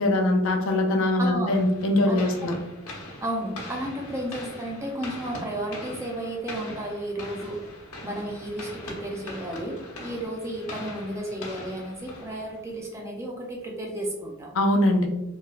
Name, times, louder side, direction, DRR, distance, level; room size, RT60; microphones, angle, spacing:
voice 1, 0.0-2.6 14.5-15.1, left 1 dB, 65° left, 3 dB, 0.4 m, -22 dB
voice 2, 1.2-1.6 2.1-2.2 3.2-7.6 8.0-14.5, right 1 dB, 15° right, -1 dB, 0.4 m, -33 dB
sound 1, 1.5-12.8, left 1 dB, 80° left, 0.8 m, -41 dB
3.1 x 2.8 x 2.3 m, 0.94 s
head